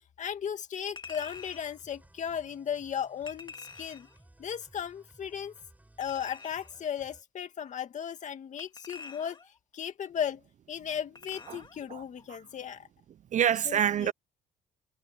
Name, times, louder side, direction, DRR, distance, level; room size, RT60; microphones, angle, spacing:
voice 1, 0.2-4.1 4.4-5.5 6.0-9.4 9.7-10.4 10.7-12.9 13.7-14.1, left 8 dB, 45° left, 2.1 m, -36 dB
Chink clink, 1.0-1.7 3.3-4.2 6.0-6.8 8.6-9.6 11.1-11.8 12.2-12.3, left 5 dB, 25° left, 2.2 m, -47 dB
sound 1, 1.0-7.2, right 1 dB, 10° right, 7.2 m, -60 dB
voice 2, 13.3-14.1, right 9 dB, 45° right, 0.7 m, -26 dB
cardioid pair, 110°, 17 cm